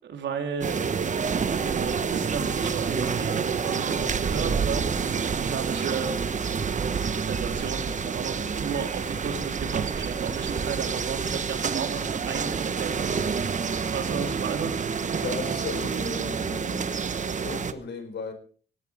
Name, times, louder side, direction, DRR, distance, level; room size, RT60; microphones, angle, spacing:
voice 1, 0.0-0.8 1.4-6.5 7.2-13.3 13.9-15.0, right 6 dB, 65° right, 4 dB, 3.8 m, -34 dB
sound 1, 0.6-17.7, right 6 dB, 40° right, 1.2 m, -28 dB
voice 2, 15.1-16.9 17.2-18.3, left 4 dB, 60° left, 8 dB, 4.4 m, -36 dB
19.0 x 17.0 x 3.6 m, 0.42 s
cardioid pair, 90°, 20 cm